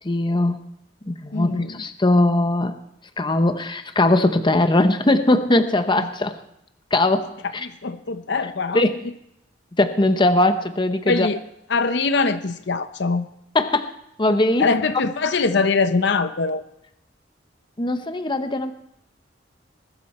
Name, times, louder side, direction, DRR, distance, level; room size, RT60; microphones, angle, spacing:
voice 1, 0.0-0.6 1.1-2.7 3.2-6.4 6.9-7.7 8.7-8.9 9.8-11.3 13.5-13.9 14.2-14.7 17.8-18.8, left 2 dB, 25° left, 9 dB, 0.8 m, -20 dB
voice 2, 1.3-1.8 6.0-6.1 7.6-8.8 11.1-11.4 11.7-13.3 14.6-16.6, left 4 dB, 65° left, 11 dB, 0.8 m, -22 dB
20.5 x 12.5 x 4.3 m, 0.78 s
head